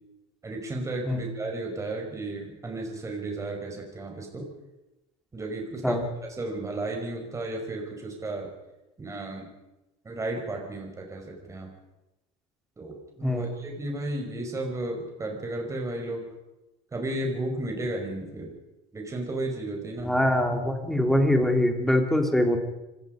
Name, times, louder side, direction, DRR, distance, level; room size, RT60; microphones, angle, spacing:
voice 1, 0.4-4.5 5.3-6.0 6.3-8.5 9.0-9.5 10.1-11.7 12.8-16.2 16.9-18.5 18.9-20.1, right 2 dB, 20° right, 1 dB, 5.4 m, -33 dB
voice 2, 20.0-22.6, left 1 dB, ahead, 3 dB, 3.6 m, -23 dB
26.0 x 20.5 x 5.3 m, 0.97 s
supercardioid pair, 115°, 16 cm